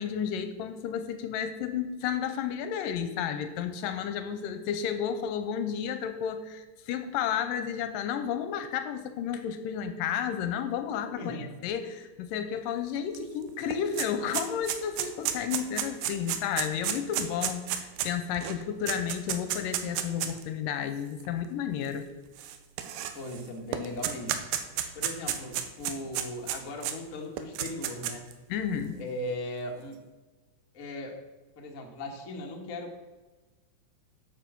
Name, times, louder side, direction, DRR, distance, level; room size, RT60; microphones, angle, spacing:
voice 1, 0.0-22.1 28.5-29.0, left 8 dB, 80° left, 9 dB, 2.2 m, -32 dB
voice 2, 11.1-11.6 23.1-24.4 24.9-28.2 29.0-30.0 30.7-31.1 31.6-32.9, left 1 dB, 55° left, 1 dB, 0.8 m, -38 dB
sound 1, 13.2-13.3 13.5-20.4 21.2-21.3 22.4-23.4 23.7-27.0 27.4-28.3, right 10 dB, 90° right, 2.6 m, -32 dB
8.4 x 8.1 x 6.1 m, 1.3 s
omnidirectional pair, 4.1 m